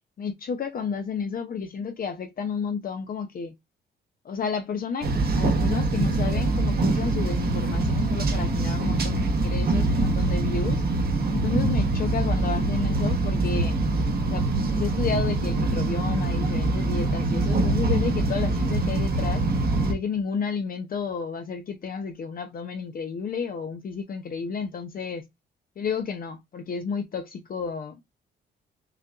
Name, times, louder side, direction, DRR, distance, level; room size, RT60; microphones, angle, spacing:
voice 1, 0.2-3.5 4.2-10.8 11.3-13.8 14.2-19.4 19.8-25.2 25.8-28.0, left 5 dB, 45° left, 0.7 m, -31 dB
sound 1, 5.0-19.9, right 2 dB, 50° right, 1.1 m, -24 dB
5.7 x 2.4 x 2.3 m
cardioid pair, 90°, 20 cm